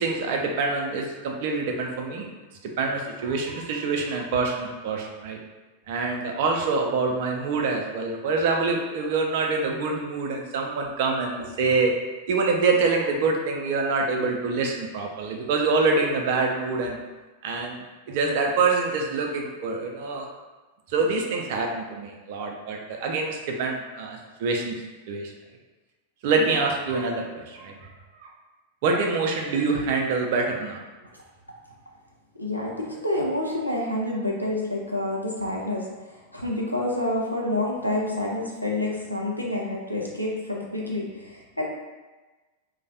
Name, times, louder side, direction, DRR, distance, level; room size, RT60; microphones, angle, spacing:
voice 1, 0.0-2.3 2.6-5.4 5.9-11.9 12.3-17.0 17.4-17.8 18.1-20.3 20.9-24.8 25.1-25.3 26.2-27.9 28.2-28.3 28.8-30.8, right 4 dB, 50° right, 1 dB, 0.4 m, -25 dB
voice 2, 32.4-35.9 36.3-41.6, left 1 dB, 90° left, -2 dB, 0.4 m, -28 dB
2.2 x 2.0 x 2.7 m, 1.2 s
figure-of-eight pair, 90°, 0 cm